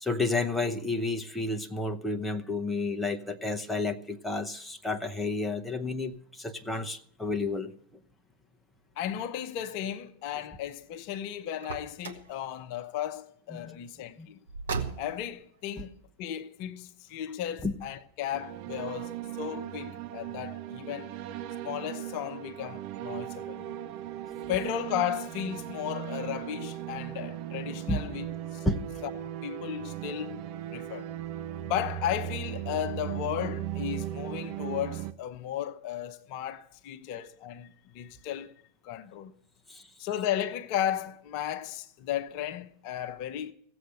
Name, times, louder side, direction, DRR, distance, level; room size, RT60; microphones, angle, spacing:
voice 1, 0.0-7.7 13.5-13.8 14.2-14.3 15.8-15.9 17.6-17.7 27.9-28.0 28.6-28.8 39.7-39.8, left 2 dB, 5° left, 0.9 m, -31 dB
voice 2, 9.0-14.4 15.0-23.7 24.5-28.7 29.0-30.4 30.7-31.1 31.6-38.5 38.8-39.3 40.0-43.5, left 10 dB, 45° left, 0.8 m, -35 dB
Car, 11.6-12.3 14.5-15.3, right 5 dB, 65° right, 1.5 m, -36 dB
sound 1, 18.3-35.1, right 12 dB, 45° right, 0.7 m, -38 dB
16.5 x 7.9 x 7.8 m
figure-of-eight pair, 90°, 0 cm